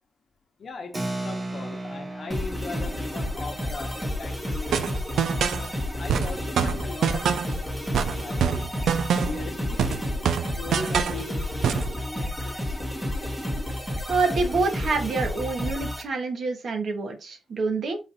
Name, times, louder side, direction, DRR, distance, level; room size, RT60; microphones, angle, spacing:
voice 1, 0.6-8.7 9.2-10.3 10.6-12.8, left 3 dB, 45° left, 0.8 m, -40 dB
Keyboard (musical), 0.9-7.0, right 2 dB, 20° right, 0.7 m, -38 dB
sound 1, 2.3-16.0, left 1 dB, 5° right, 1.1 m, -31 dB
sound 2, 4.7-5.7 6.1-7.6 7.9-9.5 9.8-11.2 11.6-11.9, right 7 dB, 80° right, 0.4 m, -25 dB
voice 2, 14.1-18.0, right 4 dB, 55° right, 1.0 m, -27 dB
5.1 x 2.5 x 4.0 m
wide cardioid pair, 140°, 0 cm